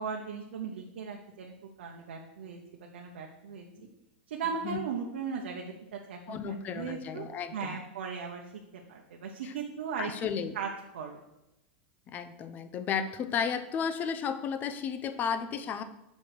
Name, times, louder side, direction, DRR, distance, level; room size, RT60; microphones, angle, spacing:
voice 1, 0.0-2.6 2.9-3.6 4.3-7.3 7.5-8.4 8.7-10.1 10.5-10.7 10.9-11.2, right 6 dB, 85° right, 0 dB, 0.9 m, -37 dB
voice 2, 6.3-7.8 9.4-9.5 10.0-10.5 12.1-15.8, left 7 dB, 30° left, 11 dB, 0.5 m, -33 dB
6.2 x 5.3 x 4.8 m, 0.92 s
supercardioid pair, 135°, 6 cm